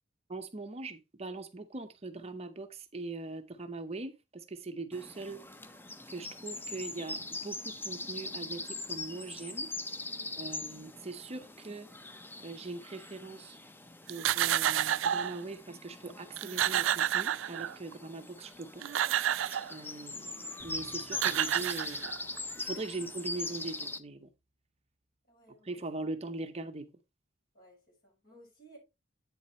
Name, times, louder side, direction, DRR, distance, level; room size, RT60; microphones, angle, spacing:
voice 1, 0.3-5.4 6.1-9.7 10.4-11.9 12.4-13.6 14.1-18.9 19.7-22.1 22.6-24.3 25.6-26.9, right 3 dB, 30° right, 0.6 m, -41 dB
sound 1, 4.9-24.0, left 2 dB, 10° left, 0.5 m, -42 dB
voice 2, 10.1-10.4 25.3-26.1 27.5-28.8, right 1 dB, 50° left, 5.6 m, -58 dB
sound 2, 14.1-15.4 16.1-16.2 16.4-17.9 18.6-19.7 20.8-20.9 21.1-22.4, right 11 dB, 70° right, 0.4 m, -30 dB
sound 3, 20.6-24.9, right 1 dB, 5° right, 1.8 m, -62 dB
8.5 x 7.0 x 3.1 m
head